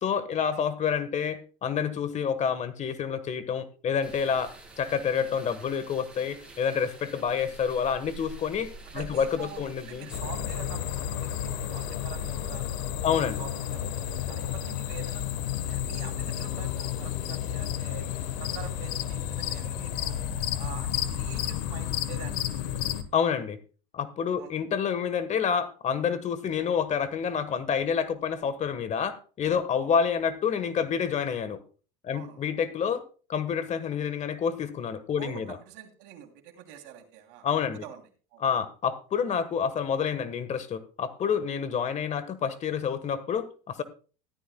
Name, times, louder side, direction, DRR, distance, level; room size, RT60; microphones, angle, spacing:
voice 1, 0.0-10.1 13.0-13.4 23.1-23.6 23.9-31.6 32.0-33.0 33.3-35.4 37.4-37.8 38.4-43.8, left 7 dB, 35° left, 13 dB, 1.3 m, -28 dB
sound 1, 4.0-10.2, right 2 dB, 5° right, 6.5 m, -47 dB
voice 2, 8.9-12.7 13.1-15.2 15.7-18.1 18.4-20.2 20.6-22.8 24.4-24.5 29.8-29.9 32.1-32.4 35.2-37.5 37.8-38.0 38.3-38.4, right 10 dB, 70° right, 6 dB, 2.8 m, -45 dB
sound 2, 10.1-23.0, left 10 dB, 75° left, 1.2 m, -31 dB
14.0 x 12.5 x 2.2 m, 0.37 s
supercardioid pair, 100°, 20 cm